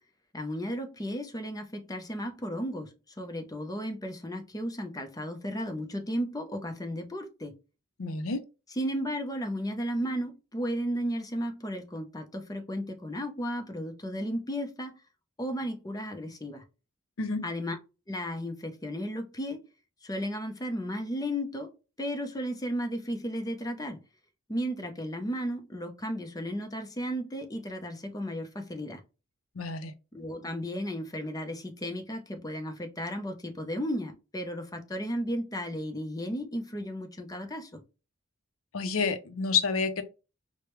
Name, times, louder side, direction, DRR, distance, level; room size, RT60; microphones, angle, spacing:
voice 1, 0.3-7.5 8.8-15.0 15.4-16.6 17.4-17.8 18.1-19.6 20.0-21.7 22.0-24.0 24.5-29.0 30.1-37.8, equal, 20° left, 0.6 m, -34 dB
voice 2, 8.0-8.4 17.2-17.5 29.5-29.9 38.7-40.0, left 5 dB, 80° left, 0.6 m, -29 dB
4.8 x 2.2 x 3.0 m
head